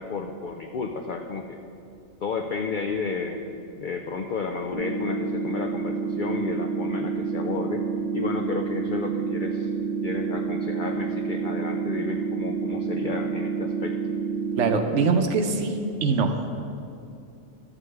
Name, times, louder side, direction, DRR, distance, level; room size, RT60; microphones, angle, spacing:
voice 1, 0.0-1.6 2.2-3.5 3.8-7.8 8.1-9.7 10.0-14.1, left 4 dB, 80° left, 4 dB, 0.4 m, -32 dB
sound 1, 4.7-14.7, right 5 dB, 25° left, 1.2 m, -29 dB
voice 2, 14.6-16.4, right 4 dB, 65° right, 6 dB, 0.9 m, -23 dB
13.0 x 7.4 x 3.3 m, 2.6 s
omnidirectional pair, 1.4 m